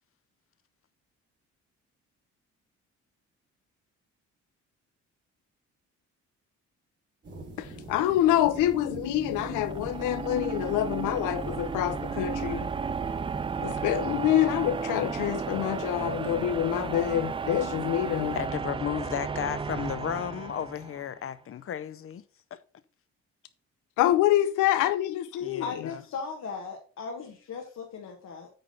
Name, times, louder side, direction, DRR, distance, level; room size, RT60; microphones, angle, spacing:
sound 1, 7.2-18.5, right 2 dB, 35° right, 3.5 m, -46 dB
voice 1, 7.6-12.7 13.6-18.4 24.0-25.6, left 13 dB, 90° left, 0.6 m, -26 dB
sound 2, 8.0-21.2, right 5 dB, 20° right, 0.4 m, -34 dB
voice 2, 18.3-22.2 22.5-22.6 25.4-26.0, left 9 dB, 45° left, 0.7 m, -34 dB
voice 3, 25.6-28.5, left 5 dB, 65° left, 1.7 m, -37 dB
9.0 x 3.7 x 5.4 m
cardioid pair, 90°, 30 cm